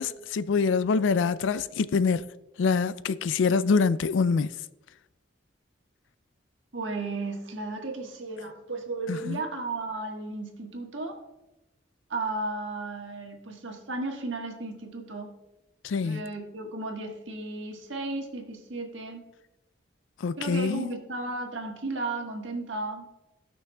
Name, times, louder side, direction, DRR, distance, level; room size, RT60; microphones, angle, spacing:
voice 1, 0.0-2.3 2.6-4.5 9.1-9.4 15.8-16.2 20.2-20.9, left 5 dB, 80° left, 0.4 m, -25 dB
voice 2, 6.7-11.2 12.1-15.3 16.0-19.3 20.4-23.1, right 2 dB, 85° right, 1.4 m, -34 dB
15.5 x 6.1 x 2.3 m
head